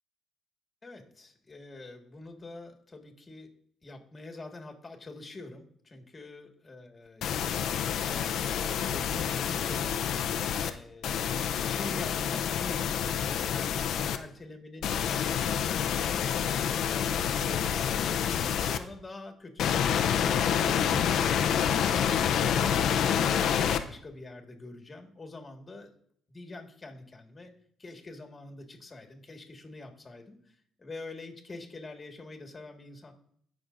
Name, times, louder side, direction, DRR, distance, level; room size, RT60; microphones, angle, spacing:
voice 1, 0.8-3.5 3.8-10.1 10.4-11.3 11.6-16.2 16.6-19.8 23.4-25.9 26.3-27.5 27.8-33.1, left 2 dB, 25° left, 2 dB, 1.8 m, -45 dB
sound 1, 7.2-10.7 11.0-14.2 14.8-18.8 19.6-23.8, left 8 dB, 75° left, 0.6 m, -28 dB
16.5 x 6.1 x 2.6 m, 0.64 s
cardioid pair, 90°, 0 cm